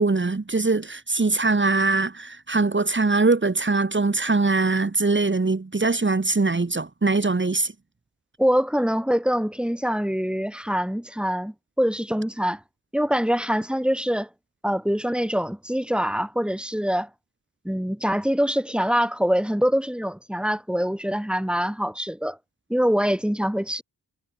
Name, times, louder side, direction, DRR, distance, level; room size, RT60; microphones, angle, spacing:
voice 1, 0.0-7.7, right 3 dB, 30° right, 3.7 m, -22 dB
voice 2, 8.4-12.6 12.9-14.3 14.6-17.1 17.6-22.4 22.7-23.8, equal, ahead, 4.7 m, -24 dB
wide cardioid pair, 120°, 38 cm